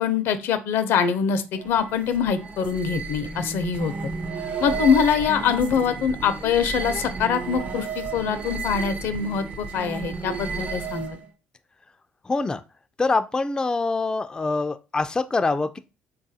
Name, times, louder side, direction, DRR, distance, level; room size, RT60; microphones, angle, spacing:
voice 1, 0.0-3.9 4.6-11.2, left 7 dB, 75° left, 0.5 m, -24 dB
sound 1, 1.5-11.3, right 4 dB, 40° right, 0.6 m, -32 dB
voice 2, 12.3-12.6 13.0-15.8, left 3 dB, 20° left, 0.3 m, -24 dB
3.6 x 2.3 x 2.7 m
supercardioid pair, 80°, 4 cm